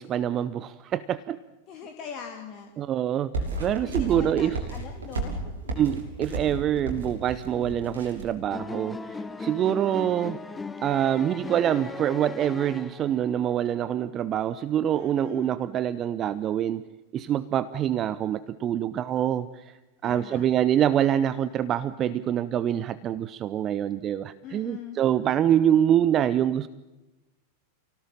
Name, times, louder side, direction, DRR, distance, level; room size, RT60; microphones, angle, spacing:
voice 1, 0.0-1.4 2.8-4.6 5.8-10.4 10.8-16.9 17.1-19.7 20.0-26.7, right 10 dB, 30° right, 16 dB, 0.8 m, -25 dB
voice 2, 1.7-2.7 3.8-5.8 7.6-8.0 15.0-15.6 20.0-20.5 24.4-25.0, left 8 dB, 35° left, 3 dB, 2.8 m, -41 dB
sound 1, 3.3-8.3, right 3 dB, 65° right, 6.6 m, -33 dB
sound 2, 8.5-13.4, left 4 dB, 10° left, 1.0 m, -37 dB
29.0 x 18.0 x 9.0 m, 1.1 s
figure-of-eight pair, 90°, 0 cm